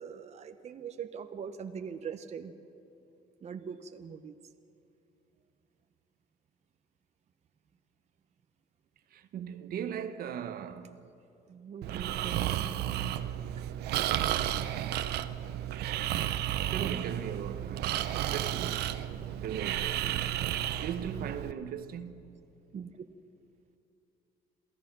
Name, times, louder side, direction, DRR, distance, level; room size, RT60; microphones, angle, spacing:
voice 1, 0.0-2.5 3.4-4.3 11.5-12.5 22.7-22.9, right 7 dB, 40° right, 1.0 m, -41 dB
voice 2, 9.1-11.0 11.9-13.1 16.7-18.1 18.3-18.9 19.4-20.4 20.8-22.2, right 8 dB, 60° right, 1.1 m, -39 dB
Breathing, 11.8-21.5, right 12 dB, 80° right, 0.9 m, -32 dB
28.0 x 15.5 x 6.1 m
cardioid pair, 110°, 17 cm